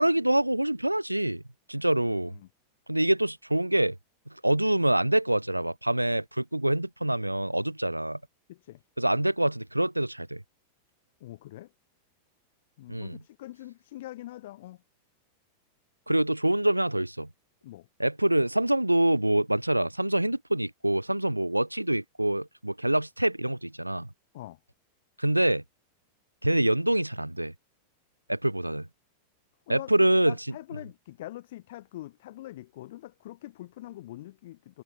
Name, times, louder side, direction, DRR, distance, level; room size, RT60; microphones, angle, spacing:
voice 1, 0.0-1.4 1.7-2.3 2.9-4.0 4.4-8.2 9.0-10.4 12.9-13.2 16.1-17.3 18.0-24.1 25.2-25.6 26.4-27.5 28.3-28.9 29.7-30.3, right 1 dB, 85° right, 2.2 m, -25 dB
voice 2, 2.0-2.5 8.5-8.8 11.2-11.7 12.8-14.8 17.6-17.9 24.3-24.6 29.7-34.8, left 15 dB, 55° left, 6.1 m, -44 dB
figure-of-eight pair, 90°, 0 cm